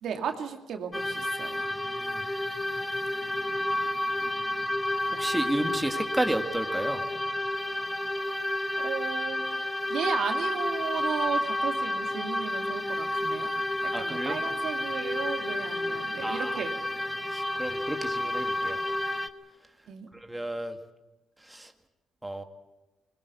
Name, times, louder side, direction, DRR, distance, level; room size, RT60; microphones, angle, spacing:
voice 1, 0.0-1.7 8.8-9.4 9.9-13.5 14.0-16.7 19.9-20.1, right 7 dB, 70° right, 4 dB, 2.4 m, -35 dB
sound 1, 0.9-19.3, left 1 dB, 10° left, 1.3 m, -30 dB
voice 2, 1.8-2.2 5.1-7.1 13.9-14.4 16.2-16.5 17.3-18.8 20.1-20.8 21.4-21.7 22.2-22.4, right 1 dB, 10° right, 5 dB, 1.8 m, -32 dB
21.0 x 21.0 x 8.4 m, 1.1 s
cardioid pair, 90°, 0 cm